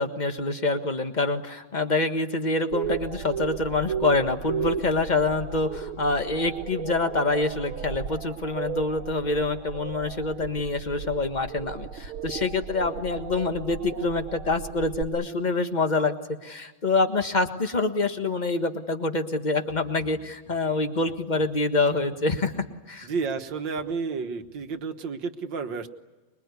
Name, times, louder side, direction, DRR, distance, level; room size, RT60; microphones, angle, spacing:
voice 1, 0.0-16.1 16.4-22.5 22.9-23.1, left 3 dB, 25° left, 8 dB, 1.4 m, -26 dB
sound 1, 2.7-15.0, right 7 dB, 85° right, 2.2 m, -35 dB
sound 2, 19.7-24.8, left 4 dB, 40° left, 4.8 m, -51 dB
voice 2, 23.0-25.9, right 5 dB, 65° right, 7 dB, 2.0 m, -31 dB
25.5 x 23.0 x 9.6 m, 1.2 s
omnidirectional pair, 2.2 m